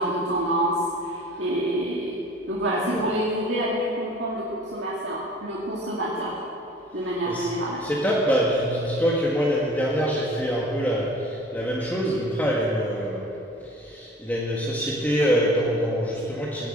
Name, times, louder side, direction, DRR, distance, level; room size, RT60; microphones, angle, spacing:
voice 1, 0.0-2.2 2.5-6.4 6.9-7.8, right 1 dB, 80° right, -6 dB, 2.3 m, -27 dB
voice 2, 7.0-7.5 7.8-13.3 13.6-16.7, equal, 10° left, -4 dB, 1.6 m, -25 dB
18.0 x 8.0 x 8.8 m, 3.0 s
head